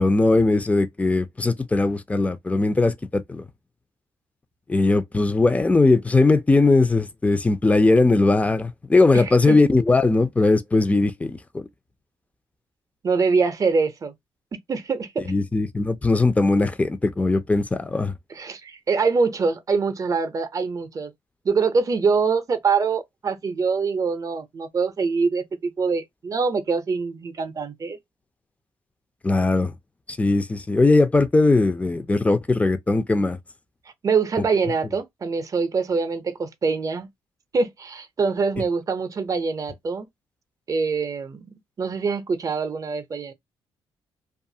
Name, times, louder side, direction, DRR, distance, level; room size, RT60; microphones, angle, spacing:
voice 1, 0.0-3.4 4.7-11.6 15.3-18.1 29.2-29.7 30.1-33.4, left 3 dB, 15° left, 0.4 m, -19 dB
voice 2, 9.1-9.6 13.0-14.1 14.7-15.3 18.3-21.1 21.4-28.0 34.0-37.1 37.5-40.1 40.7-41.5 41.8-43.3, right 4 dB, 35° right, 0.6 m, -24 dB
2.5 x 2.4 x 2.7 m
cardioid pair, 80°, 9 cm